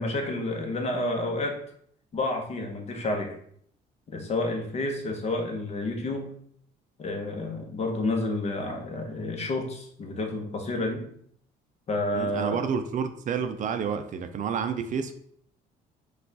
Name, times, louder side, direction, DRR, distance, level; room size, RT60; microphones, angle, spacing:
voice 1, 0.0-1.6 2.1-3.4 4.1-6.3 7.0-11.1 11.9-12.6, left 2 dB, 40° left, 3 dB, 0.9 m, -30 dB
voice 2, 12.1-15.1, right 6 dB, 50° right, 8 dB, 0.5 m, -29 dB
4.5 x 2.4 x 3.9 m, 0.64 s
cardioid pair, 110°, 17 cm